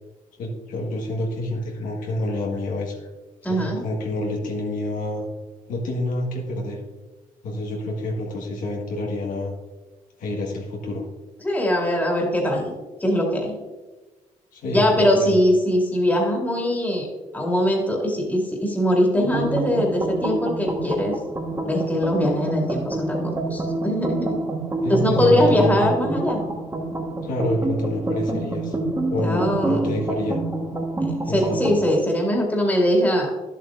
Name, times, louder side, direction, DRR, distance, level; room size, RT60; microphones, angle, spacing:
voice 1, 0.4-3.1 3.5-5.3 5.7-6.8 7.4-9.5 10.2-11.1 14.5-15.3 24.8-25.9 27.2-28.8 29.1-30.4 31.2-31.7, left 1 dB, 75° left, -1 dB, 1.6 m, -27 dB
voice 2, 3.4-3.8 11.4-12.7 13.0-13.6 14.7-17.1 17.3-21.1 21.7-24.4 24.9-26.4 29.2-29.8 31.0-33.3, equal, 10° left, -1 dB, 2.2 m, -21 dB
sound 1, 19.2-32.0, right 2 dB, 20° right, 1.4 m, -27 dB
11.0 x 7.6 x 2.6 m, 1.2 s
cardioid pair, 95°, 14 cm